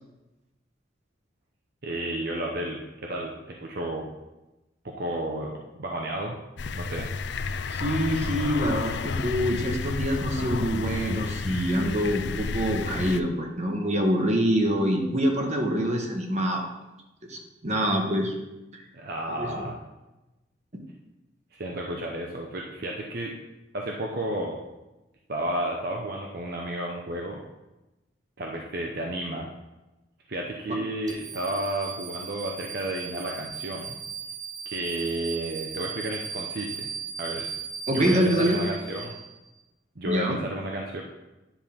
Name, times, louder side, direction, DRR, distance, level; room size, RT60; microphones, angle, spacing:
voice 1, 1.8-4.1 4.8-6.4 6.7-7.1 18.9-19.8 21.5-23.3 23.7-24.6 25.3-27.4 28.4-29.5 30.3-34.0 34.6-36.9 37.2-37.5 37.9-39.1 40.0-41.0, right 1 dB, 55° right, 0 dB, 0.8 m, -32 dB
sound 1, 6.6-13.2, left 4 dB, 65° left, 0.4 m, -31 dB
voice 2, 7.7-16.7 17.3-18.3 18.7-18.8 19.4-19.7 20.7-20.8 37.9-38.6 40.0-40.4, equal, 40° right, 2 dB, 1.3 m, -25 dB
sound 2, 31.1-39.5, right 6 dB, 20° right, 1.0 m, -37 dB
9.9 x 7.2 x 3.7 m, 1.0 s
head